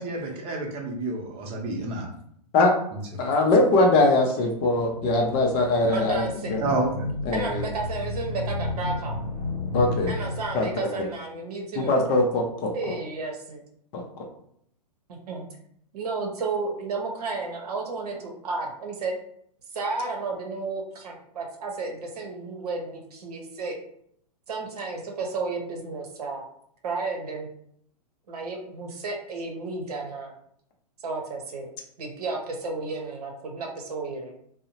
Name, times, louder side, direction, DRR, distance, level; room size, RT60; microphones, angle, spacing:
voice 1, 0.0-2.1 2.9-3.2 6.6-7.1, right 2 dB, 30° right, 0 dB, 0.7 m, -29 dB
voice 2, 3.2-6.2 6.5-6.6 7.3-7.6 9.7-10.1 10.5-11.1 11.8-13.0 13.9-14.0, left 2 dB, 30° left, 1 dB, 0.5 m, -22 dB
sound 1, 4.6-10.9, left 2 dB, 85° left, 0.7 m, -33 dB
voice 3, 5.9-6.5 7.3-9.2 10.1-11.9 12.7-13.6 15.1-15.5 15.9-19.1 19.7-23.8 24.5-26.4 26.8-27.5 28.3-30.3 31.0-31.7 32.0-34.3, right 3 dB, 65° right, 1 dB, 0.8 m, -32 dB
2.7 x 2.0 x 2.8 m, 0.68 s
hypercardioid pair, 120°, 21 cm